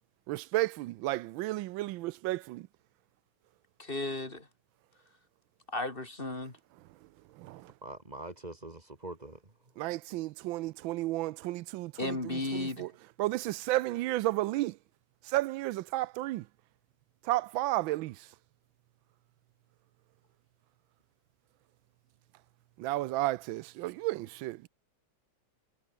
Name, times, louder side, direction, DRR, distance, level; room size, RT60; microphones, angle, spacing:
voice 1, 0.3-2.7 7.4-7.7 9.8-12.9 13.2-14.8 15.2-16.5 17.2-18.3 22.8-24.7, right 17 dB, 85° right, 1.3 m, -32 dB
voice 2, 3.8-4.5 5.7-6.6 12.0-12.9, left 2 dB, 25° left, 3.0 m, -34 dB
voice 3, 7.8-9.4, right 2 dB, 20° right, 2.1 m, -43 dB
omnidirectional pair, 2.1 m